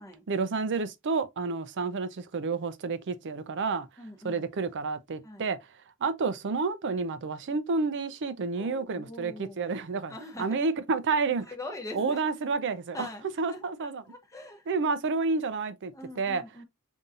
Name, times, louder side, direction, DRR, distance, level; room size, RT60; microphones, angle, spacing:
voice 1, 0.3-3.9 4.2-5.6 6.0-11.4 11.9-13.1 13.4-14.0 14.7-16.4, right 4 dB, 55° right, 0.5 m, -30 dB
voice 2, 4.0-4.4 5.2-5.5 8.6-9.7 10.1-10.6 11.5-12.2 12.9-13.2 13.5-14.6 15.9-16.6, left 1 dB, 15° left, 0.9 m, -42 dB
5.3 x 2.7 x 2.4 m
head